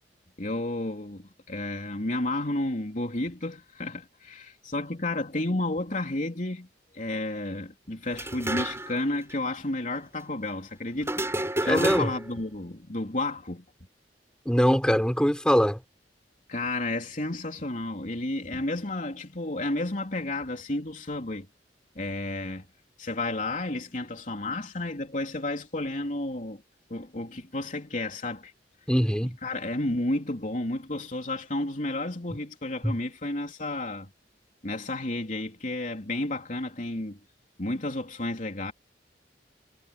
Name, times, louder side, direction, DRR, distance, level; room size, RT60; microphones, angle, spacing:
voice 1, 0.4-6.7 6.9-11.2 11.6-13.6 16.5-21.5 21.9-22.7 23.0-26.6 26.9-28.5 29.2-34.1 34.6-37.2 37.6-38.7, left 2 dB, 45° left, 3.4 m, -31 dB
sound 1, 8.1-9.0 9.3-9.4 11.0-12.4, right 1 dB, 15° right, 5.1 m, -30 dB
voice 2, 11.6-12.1 14.4-15.8 28.9-29.4 32.8-32.9, equal, 5° left, 5.0 m, -22 dB
head